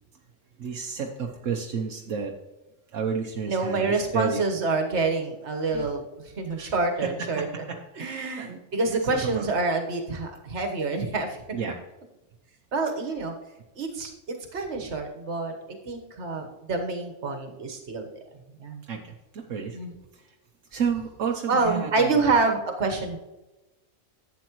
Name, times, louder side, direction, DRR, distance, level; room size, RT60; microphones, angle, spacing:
voice 1, 0.6-2.3 2.9-4.4 5.7-5.9 6.6-6.7 7.0-8.6 8.9-9.5 11.5-11.8 18.8-19.8 20.1-20.3 20.7-22.2, right 6 dB, 80° right, 1 dB, 1.2 m, -31 dB
voice 2, 3.5-7.5 8.0-11.4 12.7-13.3 13.7-18.1 18.6-18.8 19.7-19.9 21.5-23.2, right 3 dB, 65° right, 4 dB, 1.6 m, -27 dB
11.5 x 8.2 x 3.0 m, 1.0 s
omnidirectional pair, 1.3 m